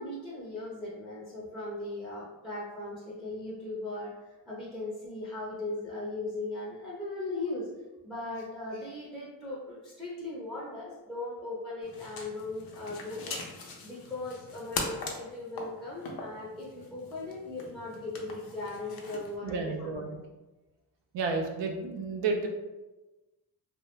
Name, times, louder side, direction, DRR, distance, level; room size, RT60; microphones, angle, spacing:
voice 1, 0.0-7.7 8.0-20.0, left 2 dB, ahead, -6 dB, 0.5 m, -38 dB
sound 1, 11.8-19.4, left 3 dB, 55° left, 0.5 m, -41 dB
voice 2, 19.4-20.2 21.1-22.5, right 4 dB, 75° right, 3 dB, 0.5 m, -31 dB
2.3 x 2.0 x 3.0 m, 1.1 s
cardioid pair, 85°, 44 cm